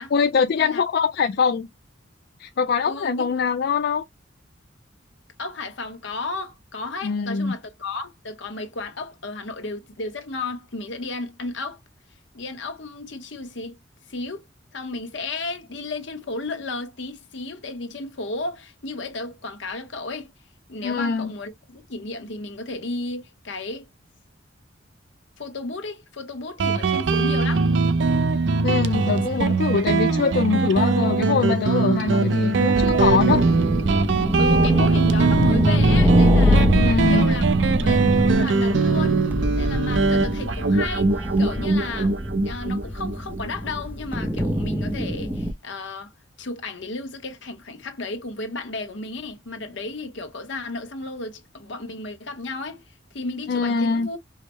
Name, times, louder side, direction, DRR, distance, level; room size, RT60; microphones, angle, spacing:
voice 1, 0.1-1.7 2.4-4.0 7.0-7.5 20.8-21.3 28.6-33.5 36.7-37.3 53.5-54.1, left 5 dB, 55° left, 0.4 m, -23 dB
voice 2, 2.8-3.3 5.4-11.8 12.3-13.8 14.1-14.4 14.7-20.3 20.7-23.9 25.4-27.7 34.4-37.4 37.8-39.2 39.5-46.1 46.4-54.2, left 3 dB, 75° left, 0.9 m, -33 dB
Guitar, 26.6-43.8, right 3 dB, 70° right, 0.5 m, -21 dB
sound 1, 32.7-45.5, equal, 10° right, 0.6 m, -24 dB
4.8 x 2.1 x 3.0 m
head